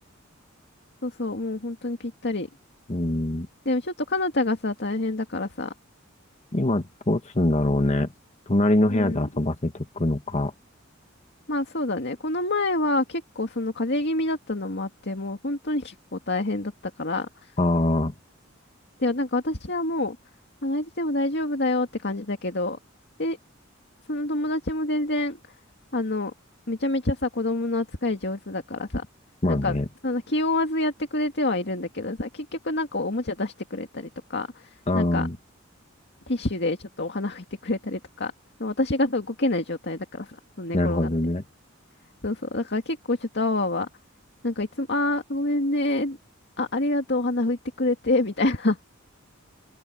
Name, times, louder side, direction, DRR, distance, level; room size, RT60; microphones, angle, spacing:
voice 1, 1.0-2.5 3.7-5.7 8.9-9.3 11.5-16.7 17.0-17.3 19.0-20.2 20.6-22.8 23.2-23.4 24.1-25.4 25.9-26.3 26.7-29.0 29.5-29.8 30.0-35.3 36.3-38.3 38.6-41.1 42.2-43.9 44.4-46.2 46.6-48.8, left 2 dB, 55° left, 2.1 m, -27 dB
voice 2, 2.9-3.5 6.5-8.1 8.5-10.5 17.6-18.1 29.4-29.8 34.9-35.4 40.7-41.4, left 1 dB, 35° left, 1.3 m, -23 dB
open air
head